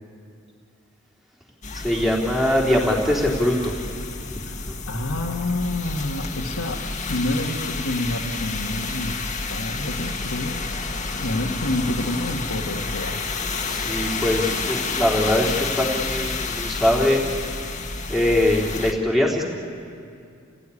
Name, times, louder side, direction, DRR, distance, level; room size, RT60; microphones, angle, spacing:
Waves sound, 1.6-18.9, left 4 dB, 35° left, 1.7 m, -30 dB
voice 1, 1.7-3.7 4.3-4.7 13.6-17.7 18.1-19.5, left 1 dB, ahead, -2 dB, 3.4 m, -22 dB
voice 2, 4.9-6.8 7.1-9.2 9.5-10.6 11.2-13.2, left 1 dB, 85° left, -2 dB, 1.8 m, -28 dB
30.0 x 17.0 x 9.9 m, 2.4 s
head